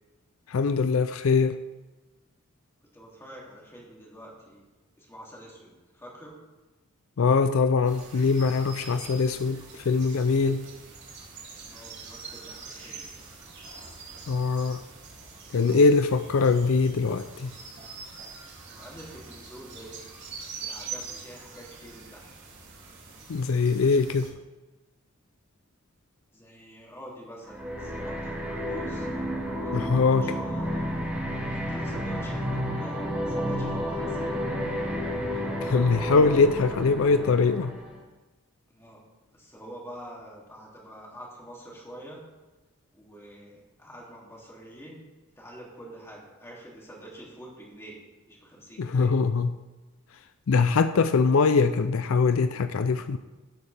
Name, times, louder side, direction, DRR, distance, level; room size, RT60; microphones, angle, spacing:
voice 1, 0.5-1.6 7.2-10.7 14.3-14.8 15.5-17.5 23.3-24.3 29.7-30.3 35.6-37.7 48.8-49.6 50.5-53.2, left 4 dB, 70° left, 11 dB, 0.4 m, -22 dB
voice 2, 2.9-4.6 5.0-6.4 11.7-13.1 18.7-20.1 20.4-22.4 26.3-29.1 29.6-30.8 31.5-34.4 38.7-39.0 39.3-42.2 42.9-45.0 45.3-48.0 48.3-49.1, right 1 dB, 10° left, -4 dB, 2.7 m, -46 dB
sound 1, 7.8-24.3, right 5 dB, 55° right, 2.8 m, -44 dB
sound 2, 27.5-38.0, equal, 5° right, 2.3 m, -31 dB
15.5 x 8.2 x 3.4 m, 1.1 s
head